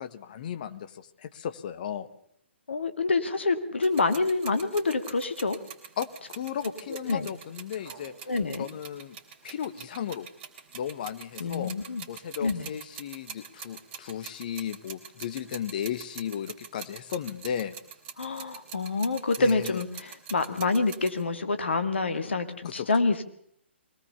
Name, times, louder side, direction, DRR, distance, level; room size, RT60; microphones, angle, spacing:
voice 1, 0.0-2.1 6.0-8.1 8.6-9.2 9.4-10.3 10.7-11.7 12.1-17.8 19.4-19.8 22.6-22.9, left 9 dB, 45° left, 12 dB, 1.3 m, -35 dB
voice 2, 2.7-5.6 7.1-7.3 8.3-8.7 11.4-12.0 12.4-12.7 18.2-23.2, left 3 dB, 65° left, 9 dB, 2.3 m, -27 dB
sound 1, 3.8-21.2, right 8 dB, 25° right, 3.3 m, -45 dB
22.5 x 18.5 x 7.0 m, 0.69 s
figure-of-eight pair, 125°, 7 cm